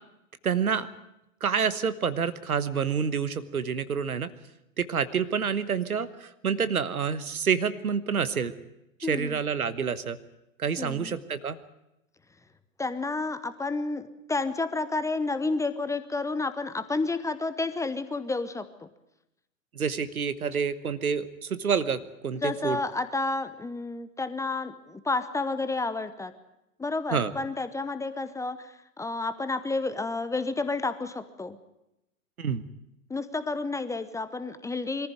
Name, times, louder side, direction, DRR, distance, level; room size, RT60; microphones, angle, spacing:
voice 1, 0.4-0.9 1.4-4.3 4.8-8.5 9.1-10.2 10.6-11.6 19.7-22.8 27.1-27.3 32.4-32.6, right 6 dB, 80° right, 14 dB, 1.3 m, -28 dB
voice 2, 9.0-9.4 10.8-11.2 12.8-18.9 22.4-26.3 26.8-31.6 33.1-35.1, left 3 dB, 5° left, 12 dB, 0.8 m, -30 dB
23.0 x 14.5 x 9.2 m, 0.87 s
figure-of-eight pair, 100°, 43 cm